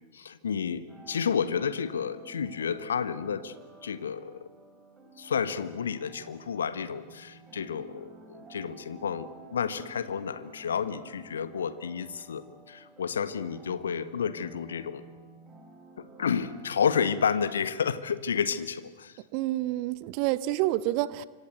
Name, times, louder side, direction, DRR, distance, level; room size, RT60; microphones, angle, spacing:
voice 1, 0.1-3.5 3.8-4.3 5.2-15.0 16.2-19.1, left 7 dB, 70° left, 13 dB, 1.4 m, -31 dB
sound 1, 0.9-18.1, right 3 dB, 15° right, 5.9 m, -51 dB
voice 2, 19.3-21.3, right 16 dB, 45° right, 17 dB, 0.9 m, -28 dB
27.5 x 25.0 x 8.2 m, 1.3 s
figure-of-eight pair, 90°, 0 cm